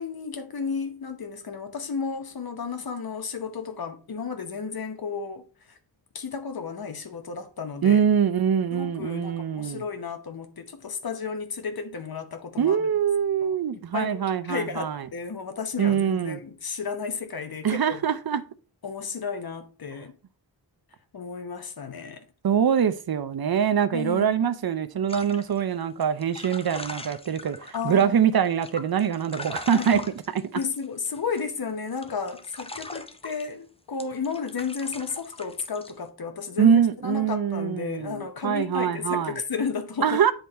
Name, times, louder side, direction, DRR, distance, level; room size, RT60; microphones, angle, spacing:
voice 1, 0.0-5.8 6.1-8.0 8.7-12.8 13.4-18.0 18.8-20.1 21.1-22.3 23.9-24.4 27.7-28.3 29.7-30.1 30.5-40.2, left 5 dB, 55° left, 1.0 m, -33 dB
voice 2, 7.8-9.8 12.6-15.1 15.8-16.4 17.6-18.4 22.4-30.0 30.3-30.6 36.6-39.4 40.0-40.3, right 8 dB, 55° right, 0.6 m, -24 dB
sound 1, 25.1-28.0 28.4-31.5 31.9-33.5 34.0-35.9, left 2 dB, 15° left, 0.6 m, -40 dB
8.1 x 3.5 x 4.2 m
wide cardioid pair, 85°, 43 cm